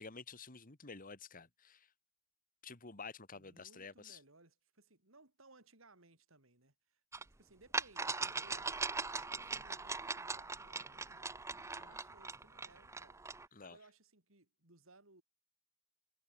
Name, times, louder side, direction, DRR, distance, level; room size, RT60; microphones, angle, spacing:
voice 1, 0.0-1.9 2.6-4.2 11.8-11.9 13.5-13.8, left 4 dB, 40° left, 2.1 m, -51 dB
voice 2, 3.3-7.0 7.4-8.8 9.2-15.2, right 2 dB, 75° right, 5.0 m, -64 dB
sound 1, 7.1-7.2 7.7-13.5, right 4 dB, 15° right, 0.6 m, -40 dB
head